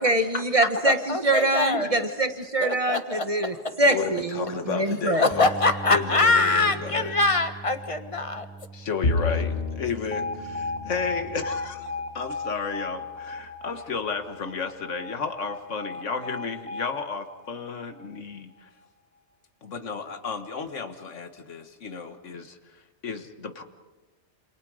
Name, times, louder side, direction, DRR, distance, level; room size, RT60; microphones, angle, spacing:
voice 1, 0.0-5.3, right 1 dB, 30° right, 7 dB, 1.3 m, -24 dB
voice 2, 0.8-2.0 2.6-3.8 5.1-8.5, left 3 dB, 30° left, 9 dB, 1.4 m, -24 dB
voice 3, 3.9-5.5 5.9-7.1 8.7-18.7 19.6-22.6 23.0-23.6, left 5 dB, 85° left, 8 dB, 1.7 m, -33 dB
Bass guitar, 5.3-11.5, right 3 dB, 10° left, 1.7 m, -41 dB
Bowed string instrument, 9.0-12.5, left 3 dB, 55° left, 1.4 m, -31 dB
Alarm, 10.1-18.2, left 3 dB, 15° right, 2.5 m, -36 dB
28.0 x 26.5 x 4.9 m, 1.2 s
omnidirectional pair, 1.2 m